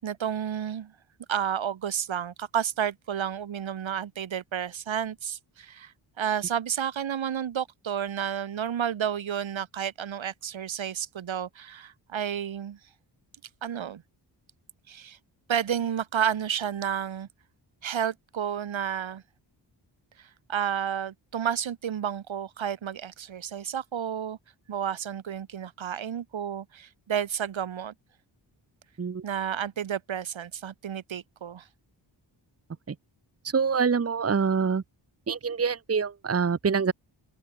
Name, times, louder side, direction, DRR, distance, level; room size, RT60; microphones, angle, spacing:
voice 1, 0.0-0.9 1.3-12.8 13.6-14.0 14.9-15.2 15.5-17.3 17.8-19.2 20.2-24.4 24.7-27.9 29.2-31.6, right 9 dB, 85° right, 7.2 m, -31 dB
voice 2, 33.5-34.8 35.3-36.9, right 5 dB, 30° right, 1.4 m, -25 dB
open air
wide cardioid pair, 140°, 45 cm